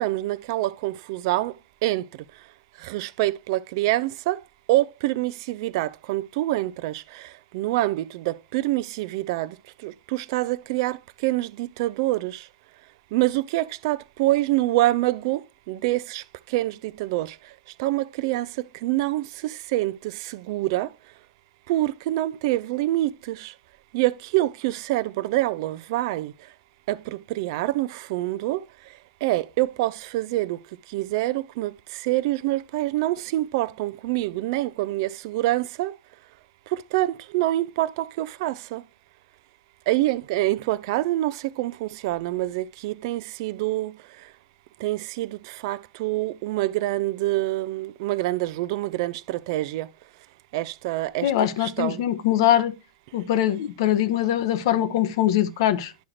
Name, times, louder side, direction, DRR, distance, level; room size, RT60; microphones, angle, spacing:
voice 1, 0.0-1.5 1.8-2.0 2.8-4.4 4.7-7.0 7.5-9.5 9.8-11.0 11.2-12.4 13.1-15.4 15.7-16.2 16.5-17.3 17.8-18.5 18.8-20.9 21.7-23.5 23.9-26.3 26.9-28.6 29.2-30.6 30.9-31.7 32.0-35.9 36.7-38.8 39.9-43.9 44.8-45.4 45.6-49.9 50.5-51.3 51.6-52.0, right 16 dB, 55° right, 0.4 m, -26 dB
voice 2, 51.2-52.7 53.1-55.9, left 12 dB, 60° left, 0.8 m, -22 dB
11.5 x 4.8 x 2.9 m
figure-of-eight pair, 90°, 3 cm